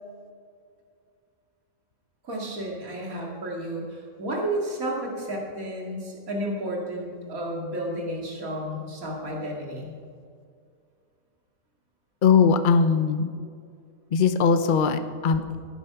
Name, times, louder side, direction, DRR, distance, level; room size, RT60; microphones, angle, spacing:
voice 1, 2.2-9.9, right 1 dB, 80° right, -1 dB, 2.7 m, -32 dB
voice 2, 12.2-13.3 14.1-15.6, left 5 dB, 45° left, 9 dB, 0.8 m, -20 dB
16.5 x 9.2 x 5.9 m, 2.2 s
omnidirectional pair, 1.4 m